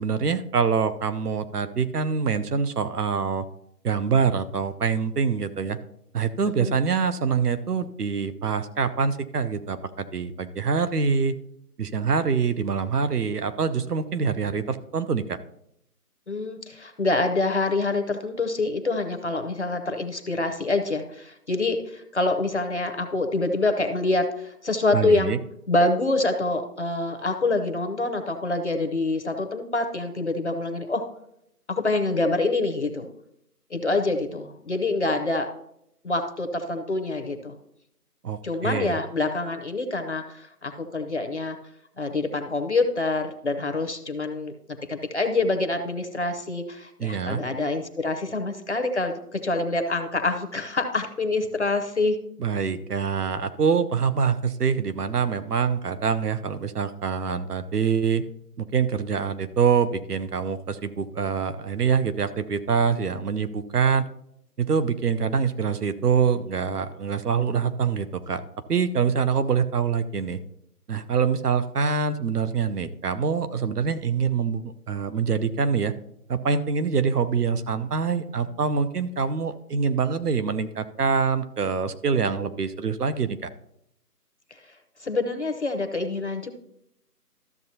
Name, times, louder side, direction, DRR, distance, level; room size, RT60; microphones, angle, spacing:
voice 1, 0.0-3.5 3.8-5.8 6.1-11.3 11.8-15.4 24.9-25.4 38.2-39.0 47.0-47.4 52.4-58.2 58.6-64.0 64.6-68.4 68.7-70.4 70.9-75.9 76.3-83.5, right 6 dB, 70° right, 11 dB, 0.8 m, -25 dB
voice 2, 16.3-25.4 25.7-31.1 31.7-33.1 33.7-35.5 36.0-37.5 38.4-41.6 42.0-44.5 44.9-52.2 85.0-86.5, left 2 dB, 45° left, 6 dB, 0.7 m, -26 dB
13.0 x 6.8 x 2.8 m, 0.76 s
figure-of-eight pair, 170°, 48 cm